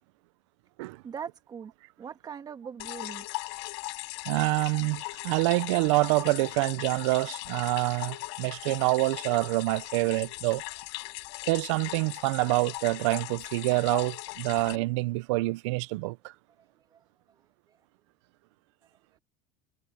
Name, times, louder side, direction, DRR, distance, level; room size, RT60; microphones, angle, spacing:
voice 1, 1.0-1.7 2.0-3.3 16.9-17.0, right 7 dB, 25° right, 2.2 m, -40 dB
sound 1, 2.8-14.8, left 25 dB, 85° left, 5.8 m, -39 dB
voice 2, 4.3-10.6 11.5-16.2, right 22 dB, 85° right, 0.7 m, -26 dB
cardioid pair, 140°, 15 cm